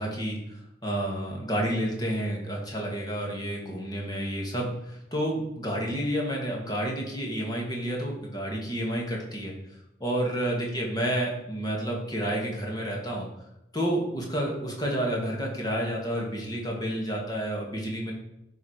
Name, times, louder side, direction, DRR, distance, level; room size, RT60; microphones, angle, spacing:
voice 1, 0.0-9.5 10.0-13.3 13.7-18.1, right 1 dB, 20° left, -1 dB, 1.9 m, -30 dB
10.5 x 4.9 x 5.0 m, 0.87 s
head